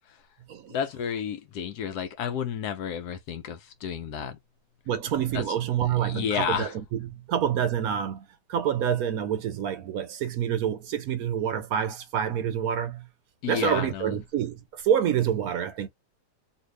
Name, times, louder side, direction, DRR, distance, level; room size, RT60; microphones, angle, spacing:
voice 1, 0.7-4.4 5.3-5.4 6.0-6.7 13.4-14.1, left 8 dB, 70° left, 1.1 m, -31 dB
voice 2, 4.9-13.1 13.5-15.9, right 9 dB, 70° right, 1.0 m, -27 dB
2.8 x 2.7 x 3.2 m
omnidirectional pair, 1.8 m